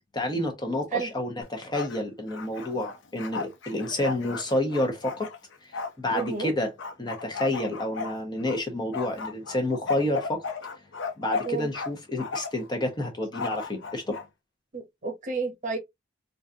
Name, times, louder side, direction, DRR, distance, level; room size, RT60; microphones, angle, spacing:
voice 1, 0.1-5.3 6.0-6.7 7.0-10.4 11.2-14.2, left 1 dB, 25° left, 1.0 m, -29 dB
Bark, 1.4-2.0 2.3-6.3 6.8-8.6 8.9-11.9 12.2-12.7 13.3-14.2, left 4 dB, 90° left, 0.7 m, -35 dB
voice 2, 6.1-6.5 11.4-11.7 14.7-15.8, right 4 dB, 40° right, 0.9 m, -31 dB
4.0 x 2.5 x 2.7 m
head